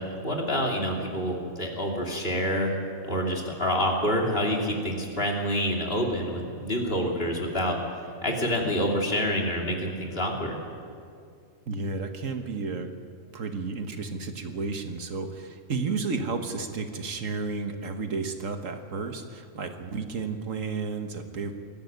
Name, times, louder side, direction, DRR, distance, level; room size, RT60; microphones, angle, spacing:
voice 1, 0.0-7.8 8.2-10.6, equal, 45° left, 0 dB, 3.1 m, -27 dB
voice 2, 11.7-12.9 13.3-21.5, right 4 dB, 75° right, 6 dB, 1.7 m, -32 dB
20.5 x 14.5 x 9.5 m, 2.3 s
omnidirectional pair, 1.4 m